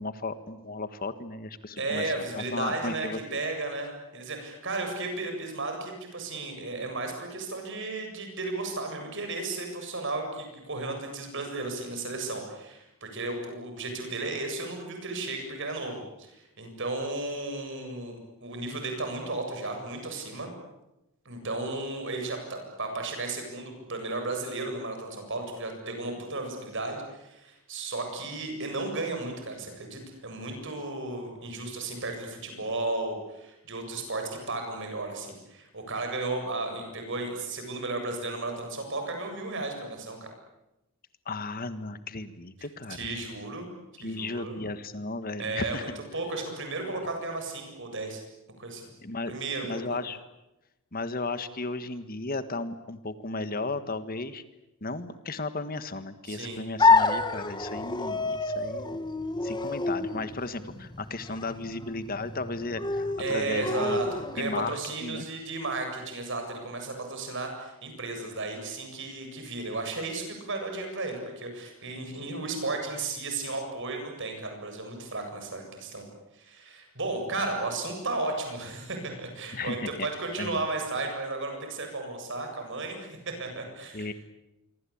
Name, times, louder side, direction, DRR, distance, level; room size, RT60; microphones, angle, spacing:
voice 1, 0.0-3.4 41.2-43.1 44.0-45.9 49.0-50.2 50.9-54.4 54.8-59.0 59.4-64.0 64.4-65.3 79.5-80.1 80.4-80.6 83.9-84.1, left 3 dB, 40° left, 11 dB, 1.5 m, -35 dB
voice 2, 1.8-20.5 21.2-40.2 42.9-43.7 44.0-44.7 45.4-48.2 48.6-48.9 49.3-50.0 56.3-56.6 63.2-76.0 76.3-84.1, right 2 dB, 60° right, 4 dB, 7.7 m, -34 dB
sound 1, 56.8-64.7, left 3 dB, 20° left, 1.7 m, -28 dB
27.0 x 24.0 x 8.7 m, 0.93 s
head